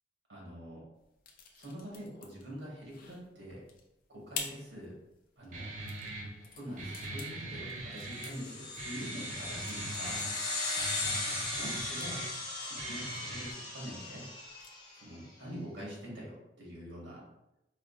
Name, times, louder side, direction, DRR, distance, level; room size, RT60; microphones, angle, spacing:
voice 1, 0.3-0.8 1.5-3.6 4.1-4.9 5.4-5.7 6.5-10.2 11.6-12.2 12.6-14.2 14.9-17.2, equal, 90° right, -3 dB, 1.4 m, -45 dB
sound 1, 0.9-14.9, left 5 dB, 55° left, 0.5 m, -50 dB
Guitar, 5.5-13.5, right 2 dB, 45° right, 0.5 m, -42 dB
sound 2, 8.1-15.0, left 2 dB, 25° left, 1.0 m, -37 dB
4.7 x 2.4 x 2.4 m, 0.89 s
head